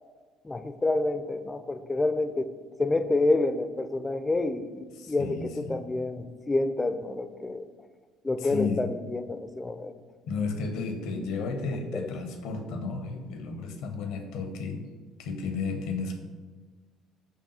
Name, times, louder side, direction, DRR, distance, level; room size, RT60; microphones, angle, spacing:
voice 1, 0.4-2.5 2.8-7.6 8.2-9.9 11.9-12.1, left 2 dB, 20° left, 10 dB, 0.3 m, -28 dB
voice 2, 5.0-5.8 8.4-8.9 10.3-14.8 15.2-16.1, left 4 dB, 65° left, 5 dB, 0.6 m, -33 dB
5.4 x 2.3 x 4.1 m, 1.5 s
figure-of-eight pair, 55°, 0 cm